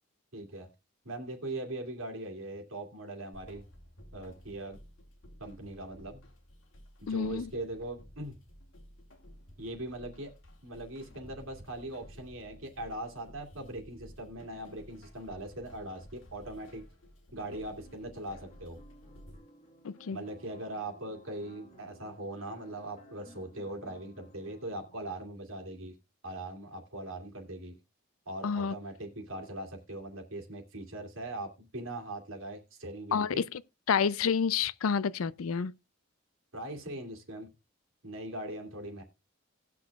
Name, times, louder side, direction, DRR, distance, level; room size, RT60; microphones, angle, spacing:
voice 1, 0.3-0.7 1.0-3.6 4.1-4.8 5.4-6.3 7.0-8.4 9.6-10.3 10.6-16.8 17.3-18.8 20.1-25.9 26.2-27.7 28.3-33.4 36.5-37.5 38.0-39.0, right 1 dB, 80° right, 2.4 m, -40 dB
sound 1, 3.3-19.4, equal, 70° left, 2.3 m, -54 dB
voice 2, 7.1-7.5 19.8-20.2 28.4-28.7 33.1-33.6 33.9-35.7, left 6 dB, 85° left, 0.4 m, -29 dB
sound 2, 17.4-25.2, equal, 35° left, 1.5 m, -58 dB
18.5 x 6.2 x 2.3 m
head